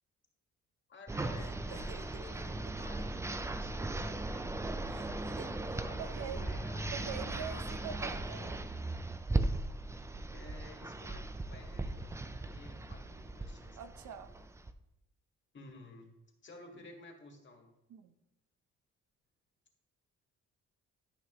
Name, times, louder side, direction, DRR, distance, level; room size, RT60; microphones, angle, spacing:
voice 1, 0.9-4.8 5.2-7.8 10.3-13.8 15.5-16.1 16.4-17.7, left 3 dB, 40° left, 2 dB, 1.8 m, -54 dB
sound 1, 1.1-14.7, right 2 dB, 10° right, 0.4 m, -38 dB
voice 2, 1.7-2.3 4.9-5.5 6.0-6.5 6.9-8.6 13.8-14.3 17.9-18.1, right 8 dB, 75° right, 9 dB, 0.8 m, -45 dB
11.5 x 5.7 x 3.0 m, 0.89 s
cardioid pair, 90°, 30 cm